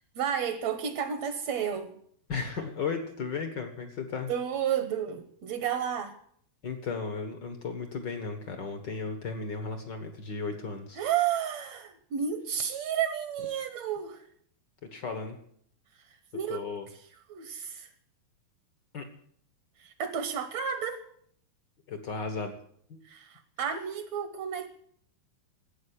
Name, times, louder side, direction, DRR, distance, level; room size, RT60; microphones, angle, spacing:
voice 1, 0.2-2.0 4.3-6.2 11.0-14.2 16.0-16.6 17.3-17.9 19.8-21.0 23.0-24.7, right 8 dB, 65° right, 9 dB, 1.8 m, -32 dB
voice 2, 2.3-4.3 6.6-11.0 14.8-15.4 16.5-16.9 18.9-19.1 21.9-22.5 22.9-23.0, left 4 dB, 65° left, 7 dB, 1.0 m, -35 dB
13.0 x 8.7 x 10.0 m, 0.64 s
omnidirectional pair, 4.3 m